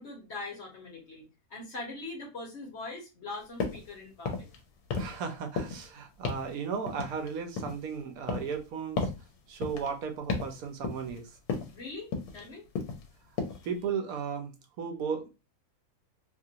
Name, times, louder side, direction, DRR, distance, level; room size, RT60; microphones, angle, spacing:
voice 1, 0.0-4.5 11.7-12.7 13.5-13.6, left 3 dB, 50° left, 1.1 m, -42 dB
sound 1, 3.6-3.9 4.2-4.6 4.9-5.3 5.6-5.9 6.3-6.5 6.9-7.9 8.3-8.6 9.0-9.2 9.6-9.9 10.3-10.6 10.8-11.2 11.5-11.8 12.1-12.5 12.8-13.1 13.4-13.7, left 4 dB, 80° left, 1.2 m, -34 dB
voice 2, 4.9-9.1 9.5-11.3 13.6-14.5 14.8-15.3, right 6 dB, 75° right, 1.1 m, -35 dB
3.0 x 2.5 x 2.7 m
omnidirectional pair, 1.6 m